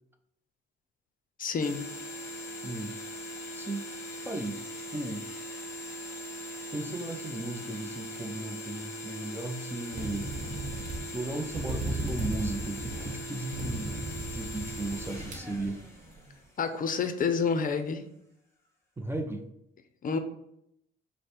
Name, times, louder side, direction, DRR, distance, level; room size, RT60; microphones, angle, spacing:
voice 1, 1.4-1.8 16.6-18.1 20.0-20.2, left 5 dB, 45° left, 7 dB, 0.5 m, -28 dB
sound 1, 1.6-16.8, equal, 15° left, 1.1 m, -41 dB
voice 2, 2.6-3.0 3.5-3.9 4.2-4.6 4.9-5.2 6.7-10.3 11.1-14.0 14.2-15.8 19.0-19.4, right 2 dB, 10° right, 5 dB, 0.4 m, -36 dB
sound 2, 9.9-16.1, right 2 dB, 40° right, 1.3 m, -36 dB
4.8 x 2.1 x 4.3 m, 0.78 s
cardioid pair, 90°, 20 cm